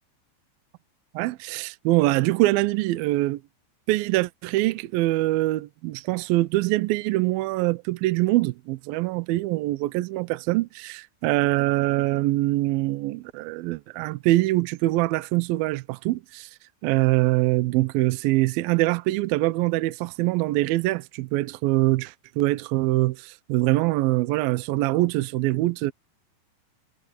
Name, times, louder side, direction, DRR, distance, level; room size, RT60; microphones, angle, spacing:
voice 1, 1.1-3.4 3.9-16.5 16.8-25.9, right 18 dB, 90° right, 2.1 m, -24 dB
omnidirectional pair, 5.1 m